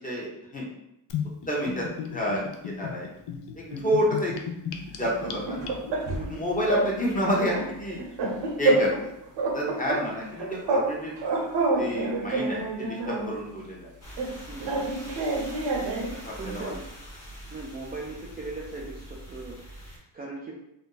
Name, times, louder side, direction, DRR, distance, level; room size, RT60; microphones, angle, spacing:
voice 1, 0.0-0.7 1.5-3.1 3.5-4.3 4.9-5.6 6.2-8.0 8.6-9.1 9.4-11.1 11.8-13.9 16.1-16.7, equal, 20° left, -3 dB, 0.7 m, -29 dB
Gurgling / Bathtub (filling or washing), 1.1-6.1, left 7 dB, 70° left, 0.5 m, -35 dB
sound 1, 5.0-6.3 6.7-6.9 7.2-9.1 9.4-10.9 11.2-13.3 14.2-16.2, right 3 dB, 75° right, 0.8 m, -28 dB
voice 2, 6.1-6.5 14.5-14.8 16.4-16.9 17.5-20.5, right 3 dB, 25° right, -5 dB, 0.3 m, -39 dB
sound 2, 14.0-20.0, equal, 35° left, 1.0 m, -43 dB
2.6 x 2.2 x 3.7 m, 0.82 s
cardioid pair, 135°, 43 cm